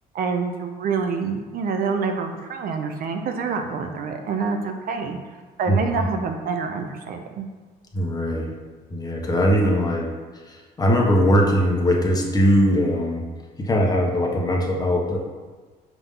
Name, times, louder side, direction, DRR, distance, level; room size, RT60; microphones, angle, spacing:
voice 1, 0.1-5.2 5.6-7.5, right 5 dB, 60° right, 5 dB, 0.7 m, -27 dB
voice 2, 5.7-6.0 7.9-8.5 8.9-13.2 13.6-15.2, equal, 20° left, 0 dB, 1.2 m, -21 dB
6.0 x 3.6 x 5.5 m, 1.4 s
cardioid pair, 110°, 17 cm